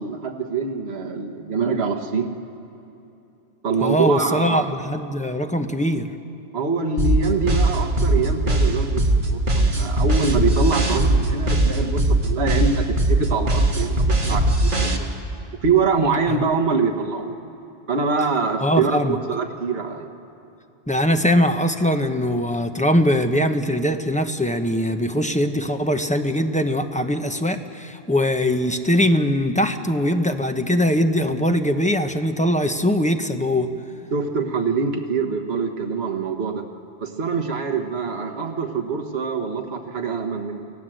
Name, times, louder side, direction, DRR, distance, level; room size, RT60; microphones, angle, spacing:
voice 1, 0.0-2.3 3.6-4.7 6.5-14.9 15.6-17.3 17.9-20.1 34.1-36.7 37.0-40.6, right 4 dB, 70° right, 3 dB, 1.5 m, -24 dB
voice 2, 3.8-6.1 16.3-16.4 18.6-19.2 20.9-33.7, equal, 5° left, 6 dB, 0.9 m, -21 dB
sound 1, 7.0-15.0, right 1 dB, 50° right, 1.8 m, -19 dB
29.5 x 15.5 x 7.8 m, 2.9 s
omnidirectional pair, 1.1 m